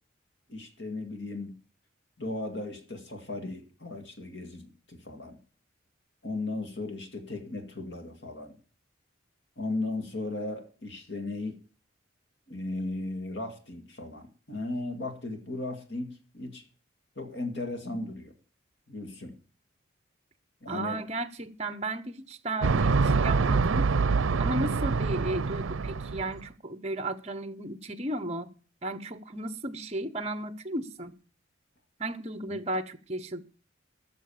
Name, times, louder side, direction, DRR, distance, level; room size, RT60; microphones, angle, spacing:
voice 1, 0.5-1.5 2.2-5.4 6.2-8.5 9.6-11.6 12.5-16.6 17.2-18.3 18.9-19.3 20.6-21.0 32.5-32.6, left 2 dB, 65° left, 2.0 m, -36 dB
voice 2, 20.7-23.9 24.4-28.5 28.8-31.1 32.0-33.4, right 1 dB, 30° right, 0.9 m, -34 dB
sound 1, 22.6-26.4, right 4 dB, 85° right, 0.5 m, -25 dB
14.0 x 6.8 x 7.1 m
head